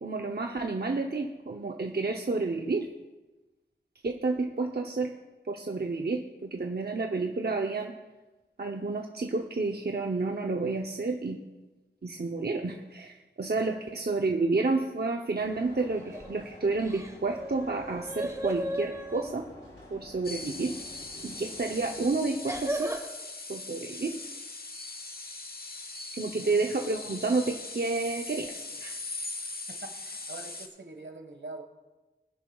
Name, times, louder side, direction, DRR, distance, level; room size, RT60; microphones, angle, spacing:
voice 1, 0.0-2.9 4.0-5.1 5.5-7.9 8.6-11.4 12.0-19.5 19.9-20.7 21.2-22.9 23.5-24.2 26.2-28.9, right 3 dB, 60° right, 2 dB, 0.8 m, -30 dB
sound 1, 15.4-22.2, left 1 dB, 80° left, 3.3 m, -50 dB
sound 2, 16.0-16.4 16.8-19.3 21.1-21.3 22.5-23.1, equal, 15° right, 1.2 m, -35 dB
sound 3, 20.2-30.7, left 3 dB, 55° left, 1.0 m, -40 dB
voice 2, 26.2-26.6 29.7-31.6, right 2 dB, 80° right, 5 dB, 1.5 m, -44 dB
20.0 x 10.5 x 2.4 m, 1.2 s
wide cardioid pair, 60°, 19 cm